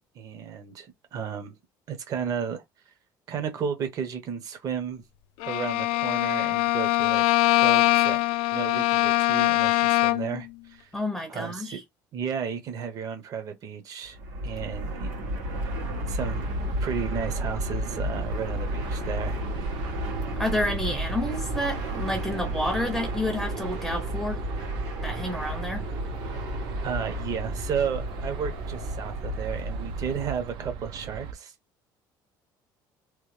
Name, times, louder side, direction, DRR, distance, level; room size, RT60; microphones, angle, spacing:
voice 1, 0.0-1.6 1.9-2.6 3.3-5.0 5.4-7.2 7.5-8.2 8.5-10.9 11.3-11.8 12.1-14.2 14.4-15.1 16.1-16.5 16.8-19.4 26.8-31.5, right 7 dB, 45° right, 0.9 m, -33 dB
Bowed string instrument, 5.4-10.4, left 16 dB, 85° left, 0.4 m, -23 dB
voice 2, 10.9-11.8 20.4-24.4 25.0-25.9, left 1 dB, 5° right, 0.6 m, -30 dB
Fixed-wing aircraft airplane, 14.1-30.5, equal, 85° right, 1.6 m, -32 dB
sound 1, 16.2-31.3, right 7 dB, 70° right, 0.5 m, -40 dB
3.1 x 2.2 x 3.2 m
cardioid pair, 135°, 8 cm